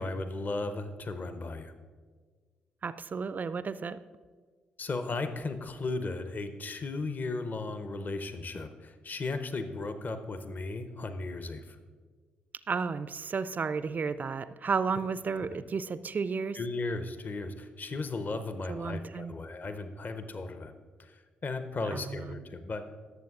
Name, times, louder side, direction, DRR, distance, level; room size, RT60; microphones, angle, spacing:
voice 1, 0.0-1.7 4.8-11.8 16.5-20.7 21.0-22.9, left 3 dB, 40° left, 9 dB, 0.7 m, -36 dB
voice 2, 2.8-4.0 12.7-16.6 18.7-19.3 21.9-22.5, right 5 dB, 35° right, 15 dB, 0.4 m, -33 dB
18.5 x 7.3 x 2.4 m, 1.5 s
figure-of-eight pair, 40°, 5 cm